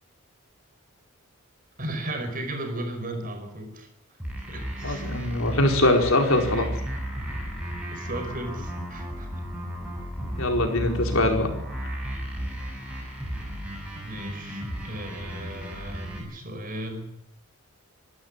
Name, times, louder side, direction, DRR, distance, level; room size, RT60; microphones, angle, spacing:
voice 1, 1.8-3.9 4.5-5.2 7.9-9.4 13.9-17.1, right 1 dB, 40° right, 6 dB, 5.1 m, -35 dB
sound 1, 4.2-16.2, equal, 5° right, 6.6 m, -34 dB
voice 2, 4.8-6.7 10.4-11.5, left 1 dB, 65° left, 3 dB, 4.8 m, -22 dB
25.5 x 12.5 x 9.8 m, 0.78 s
head